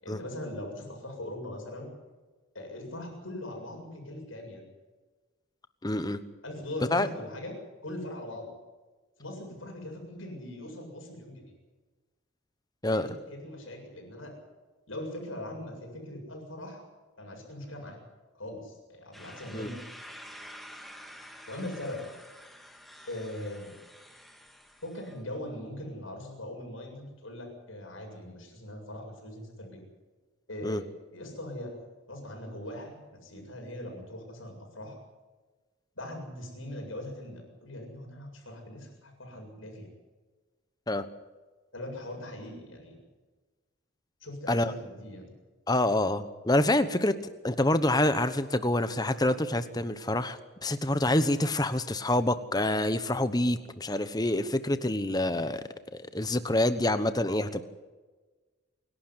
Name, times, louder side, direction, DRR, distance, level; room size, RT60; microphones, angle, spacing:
voice 1, 0.0-1.9 2.5-4.7 6.4-7.6 7.8-8.5 9.2-11.5 12.9-14.3 14.9-16.8 17.2-18.0 18.3-19.8 21.5-22.1 23.1-23.7 24.8-29.8 30.5-30.8 31.1-31.8 32.1-35.0 36.0-39.9 41.7-43.0 44.2-45.4 57.4-57.5, left 1 dB, 70° left, 1 dB, 7.5 m, -40 dB
voice 2, 5.8-6.2 6.9-7.1 12.8-13.1 19.5-19.7 30.6-30.8 40.9-41.1 44.5-44.7 45.7-47.1 47.4-55.6 55.9-57.6, left 1 dB, 20° left, 11 dB, 1.0 m, -27 dB
sound 1, 19.1-25.2, equal, ahead, 1.9 m, -49 dB
27.0 x 12.0 x 9.9 m, 1.3 s
head